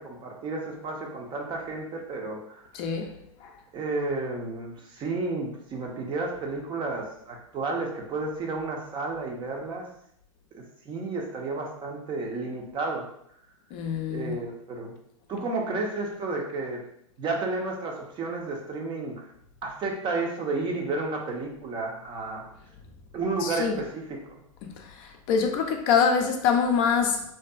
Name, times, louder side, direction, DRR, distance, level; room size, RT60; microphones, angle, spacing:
voice 1, 0.0-2.6 3.7-9.9 10.9-13.1 14.1-14.9 15.3-16.8 17.2-19.3 19.6-22.4 23.1-24.2, right 3 dB, 30° right, 0.5 m, -32 dB
voice 2, 2.7-3.1 3.4-3.5 13.7-14.4 23.4-23.8 24.8-27.2, left 6 dB, 45° left, 0.4 m, -25 dB
2.6 x 2.3 x 2.2 m
hypercardioid pair, 115°, 17 cm